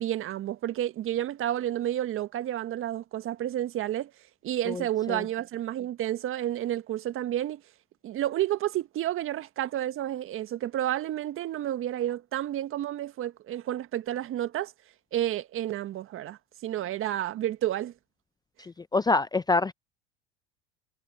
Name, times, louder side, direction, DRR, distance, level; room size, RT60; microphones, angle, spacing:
voice 1, 0.0-4.1 4.4-7.6 8.0-14.7 15.1-17.9, right 12 dB, 45° right, 1.6 m, -30 dB
voice 2, 18.6-19.7, left 3 dB, 15° left, 0.6 m, -26 dB
hypercardioid pair, 80°, 29 cm